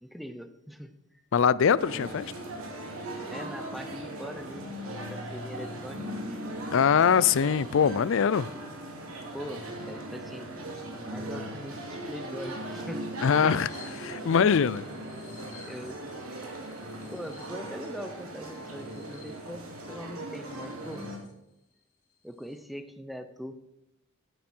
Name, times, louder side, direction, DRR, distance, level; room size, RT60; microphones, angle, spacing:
voice 1, 0.0-1.2 3.3-6.1 6.6-6.7 9.3-13.1 13.4-13.6 15.6-16.1 17.1-21.0 22.2-23.5, equal, ahead, 0.7 m, -42 dB
voice 2, 1.3-2.3 6.7-8.5 13.2-13.7 14.0-14.9, left 7 dB, 65° left, 0.4 m, -22 dB
sound 1, 1.8-21.2, right 1 dB, 90° right, 2.7 m, -39 dB
sound 2, 13.7-21.3 21.7-21.8 22.1-22.6, left 3 dB, 85° left, 2.6 m, -52 dB
15.0 x 9.3 x 4.4 m
head